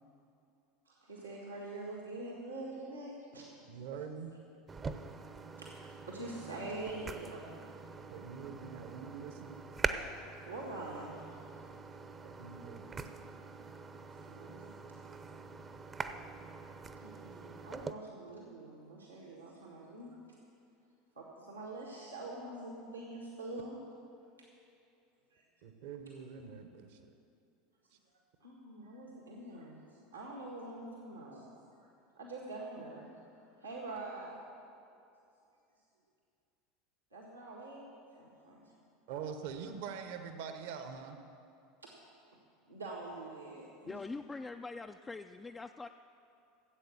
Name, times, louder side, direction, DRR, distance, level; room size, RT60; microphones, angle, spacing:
voice 1, 0.8-3.5 5.6-7.7 10.1-11.5 11.9-12.4 14.2-14.7 17.0-20.2 21.1-23.8 24.4-24.5 25.3-25.5 28.1-31.9 32.1-34.4 37.1-38.8 41.8-42.1 42.7-44.0, right 2 dB, 85° right, -3 dB, 1.7 m, -45 dB
voice 2, 3.7-4.3 8.1-9.6 12.2-13.1 16.7-16.8 25.6-27.1 39.1-41.2, right 6 dB, 60° right, 7 dB, 1.0 m, -44 dB
sound 1, 4.7-17.9, right 4 dB, 25° right, 0.7 m, -44 dB
voice 3, 43.9-45.9, left 3 dB, 15° left, 6 dB, 0.3 m, -43 dB
14.5 x 8.1 x 7.4 m, 2.6 s
figure-of-eight pair, 80°, 0 cm